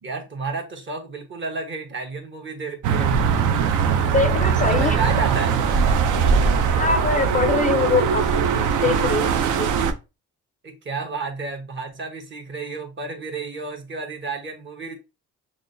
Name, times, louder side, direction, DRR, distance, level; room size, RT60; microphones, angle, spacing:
voice 1, 0.0-3.2 4.7-5.5 10.6-15.0, right 3 dB, 40° right, 1.1 m, -31 dB
sound 1, 2.8-9.9, right 6 dB, 85° right, 0.5 m, -20 dB
voice 2, 4.1-5.0 6.7-9.7, left 4 dB, 25° left, 0.4 m, -23 dB
5.9 x 2.0 x 2.6 m
cardioid pair, 90°, 30 cm